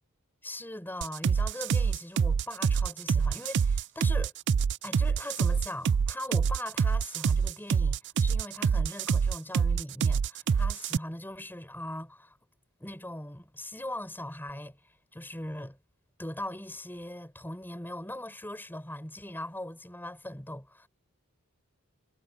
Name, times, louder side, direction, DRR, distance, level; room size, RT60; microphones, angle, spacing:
voice 1, 0.4-4.3 4.8-12.4 12.8-14.8 15.1-15.8 16.2-20.9, left 1 dB, 10° left, 7.5 m, -40 dB
sound 1, 1.0-11.0, right 6 dB, 55° right, 0.4 m, -26 dB
head